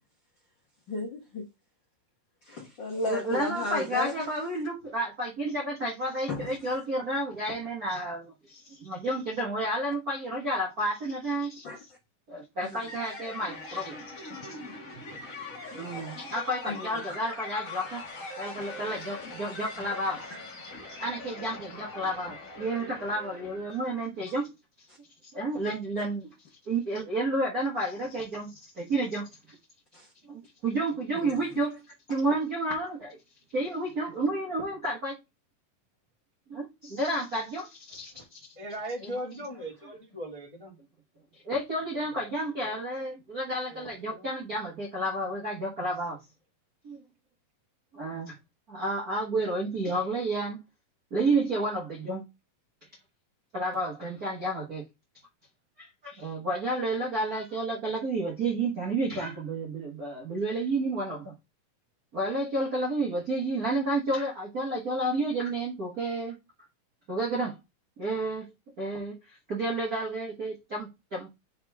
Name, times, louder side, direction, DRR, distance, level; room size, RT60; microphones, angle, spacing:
voice 1, 0.9-1.4 2.4-4.1 6.3-6.4 11.6-11.8 12.6-12.7 15.8-16.2 16.7-16.9 29.9-30.1 31.2-31.3, left 3 dB, 85° left, 1.0 m, -34 dB
voice 2, 2.9-11.6 12.3-14.3 15.7-18.1 18.4-20.4 20.9-24.5 25.2-26.3 26.6-29.6 30.2-31.8 32.1-33.2 33.5-35.2 36.5-38.5 39.0-39.5 41.4-46.2 46.8-47.0 47.9-48.4 48.7-50.6 51.1-52.3 53.5-54.9 55.8-61.3 62.1-66.4 67.1-67.6 68.0-68.5 68.8-71.3, right 2 dB, 60° right, 0.9 m, -31 dB
sound 1, 12.9-24.0, left 2 dB, 55° left, 0.8 m, -42 dB
voice 3, 38.5-40.7 41.9-42.2 43.7-44.3, right 1 dB, 40° left, 0.4 m, -39 dB
10.0 x 3.6 x 3.5 m
omnidirectional pair, 4.3 m